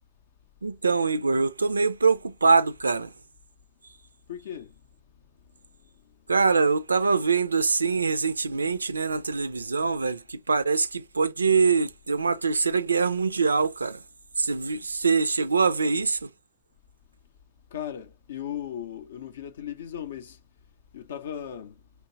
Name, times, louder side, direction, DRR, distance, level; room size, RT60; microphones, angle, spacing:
voice 1, 0.6-3.1 6.3-14.0 14.4-16.3, right 4 dB, 75° right, 0.3 m, -24 dB
voice 2, 4.3-4.7 17.7-20.4 20.9-21.8, left 10 dB, 65° left, 0.5 m, -37 dB
4.6 x 2.9 x 2.7 m
figure-of-eight pair, 90°, 0 cm